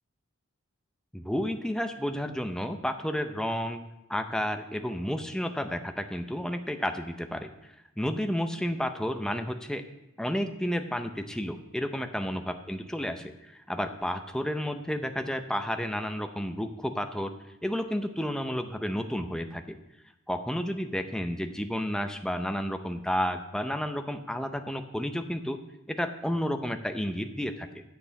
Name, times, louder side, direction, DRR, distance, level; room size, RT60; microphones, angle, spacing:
voice 1, 1.1-3.8 4.1-7.5 8.0-9.8 10.2-17.3 17.6-19.8 20.3-25.6 25.9-27.8, equal, 5° left, 7 dB, 0.5 m, -31 dB
7.8 x 6.9 x 6.0 m, 0.92 s
head